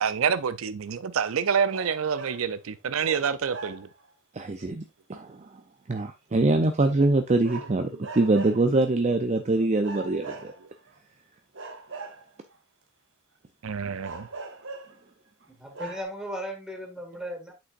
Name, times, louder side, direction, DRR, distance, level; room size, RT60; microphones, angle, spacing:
voice 1, 0.0-3.9 10.2-10.3 13.6-14.3, right 7 dB, 85° right, 0.5 m, -27 dB
sound 1, 1.7-2.5 3.0-4.1 7.4-8.7 9.8-10.9 11.5-12.6 14.0-15.0 15.4-15.5 15.7-16.0, right 3 dB, 65° right, 1.3 m, -40 dB
voice 2, 4.3-4.8 5.1-5.5 5.9-10.5, right 2 dB, 35° right, 0.5 m, -24 dB
voice 3, 15.5-17.5, equal, 5° right, 2.0 m, -36 dB
8.2 x 6.1 x 2.5 m
head